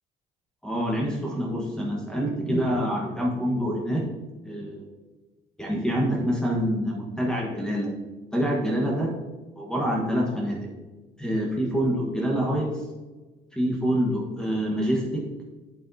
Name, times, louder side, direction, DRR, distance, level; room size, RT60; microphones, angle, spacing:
voice 1, 0.6-4.0 4.4-4.9 5.6-7.9 8.3-9.1 9.6-10.7 11.2-12.9 13.5-15.2, equal, 5° left, -3 dB, 1.3 m, -26 dB
8.7 x 7.3 x 2.7 m, 1.3 s
cardioid pair, 110°, 17 cm